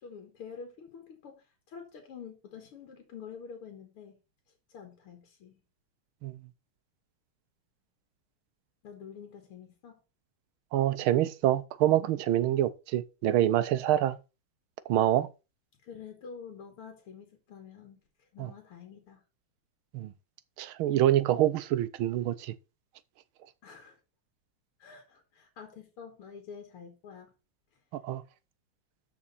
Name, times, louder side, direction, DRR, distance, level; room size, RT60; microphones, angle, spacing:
voice 1, 0.0-4.2 4.7-5.6 8.8-10.0 15.8-18.0 18.3-19.2 23.6-24.0 24.8-27.3, left 6 dB, 80° left, 2.4 m, -47 dB
voice 2, 10.7-14.2 14.9-15.3 18.4-18.5 19.9-20.1 20.6-22.5 27.9-28.2, right 12 dB, 75° right, 1.5 m, -26 dB
13.0 x 4.9 x 4.1 m
omnidirectional pair, 2.4 m